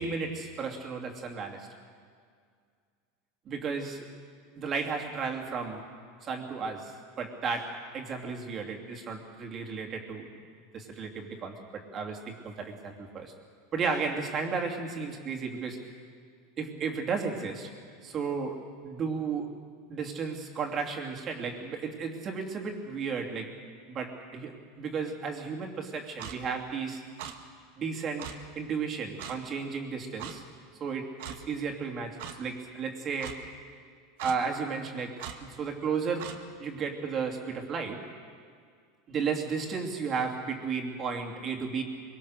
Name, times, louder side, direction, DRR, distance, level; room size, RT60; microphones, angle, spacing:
voice 1, 0.0-1.7 3.5-4.0 4.6-5.8 6.2-10.3 10.7-13.3 13.7-15.9 16.6-17.7 18.0-19.5 19.9-23.6 23.9-27.0 27.8-30.4 30.8-33.4 34.2-36.3 36.6-38.1 39.1-41.8, right 5 dB, 25° right, 2 dB, 2.8 m, -34 dB
Clock, 26.2-26.4 27.2-27.3 28.2-28.3 29.2-29.4 30.2-30.4 31.2-31.4 32.2-32.3 33.2-33.4 34.2-34.4 35.2-35.4 36.2-36.4, right 9 dB, 70° right, 1.9 m, -39 dB
24.0 x 24.0 x 6.6 m, 2.1 s
supercardioid pair, 160°, 0 cm